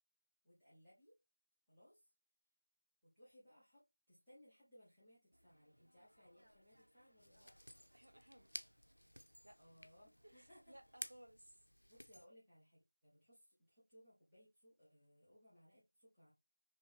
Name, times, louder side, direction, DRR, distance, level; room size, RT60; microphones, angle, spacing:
voice 1, 0.4-1.2 1.7-2.1 3.0-7.5 9.6-10.7 11.9-16.3, equal, ahead, 0.8 m, -66 dB
sound 1, 5.3-11.0, equal, 80° right, 1.4 m, -74 dB
sound 2, 7.2-12.3, equal, 85° left, 0.5 m, -55 dB
voice 2, 7.9-8.5 9.4-9.6 10.2-11.6, right 1 dB, 55° right, 0.6 m, -61 dB
2.9 x 2.7 x 3.1 m
figure-of-eight pair, 175°, 0 cm